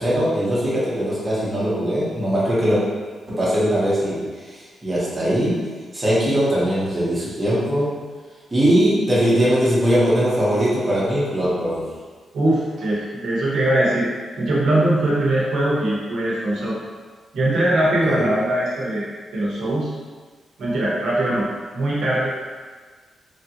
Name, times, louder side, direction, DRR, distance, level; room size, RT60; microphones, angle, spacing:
voice 1, 0.0-2.8 3.3-5.6 5.9-7.9 8.5-11.9 17.8-18.3, equal, 15° right, -9 dB, 0.7 m, -20 dB
voice 2, 12.3-14.1 14.4-16.8 17.3-19.1 19.3-19.9 20.6-21.5 21.7-22.3, right 1 dB, 70° right, -6 dB, 0.8 m, -21 dB
3.2 x 2.5 x 2.7 m, 1.5 s
wide cardioid pair, 170°, 0 cm